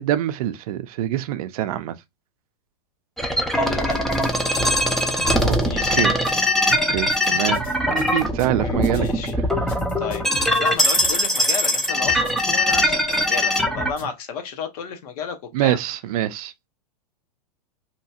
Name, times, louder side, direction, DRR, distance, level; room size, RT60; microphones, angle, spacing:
voice 1, 0.0-1.9 5.4-5.6 5.9-6.1 6.7-9.1 15.5-16.7, right 13 dB, 60° right, 0.5 m, -25 dB
sound 1, 3.2-13.9, left 1 dB, ahead, 0.4 m, -21 dB
voice 2, 3.5-4.0 5.7-6.0 8.5-9.4 10.0-10.2 10.6-15.8, left 6 dB, 60° left, 0.9 m, -32 dB
sound 2, 3.9-14.0, equal, 40° left, 1.3 m, -39 dB
2.9 x 2.3 x 2.7 m
hypercardioid pair, 125°, 21 cm